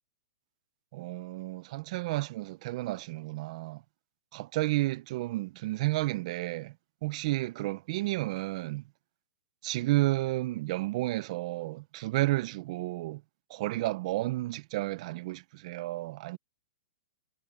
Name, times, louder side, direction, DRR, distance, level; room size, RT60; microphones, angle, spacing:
voice 1, 0.9-3.8 4.3-6.7 7.0-8.8 9.6-13.2 13.5-16.4, right 18 dB, 35° right, 0.4 m, -31 dB
hypercardioid pair, 170°, 6 cm